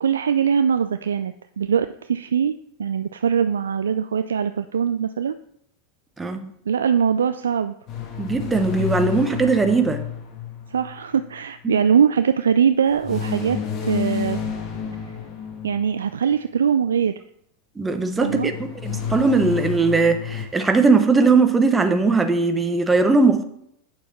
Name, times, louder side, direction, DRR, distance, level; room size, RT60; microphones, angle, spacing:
voice 1, 0.0-2.5 2.8-5.4 6.7-7.7 10.7-14.4 15.6-17.2 18.2-18.5, right 7 dB, 80° right, 0.3 m, -21 dB
voice 2, 6.2-6.5 8.2-10.0 11.6-11.8 17.8-23.4, right 4 dB, 15° right, 1.1 m, -19 dB
sound 1, 7.9-11.4 13.0-16.1 18.2-20.5, left 7 dB, 40° left, 1.7 m, -30 dB
8.5 x 7.0 x 4.2 m
hypercardioid pair, 90°, 0 cm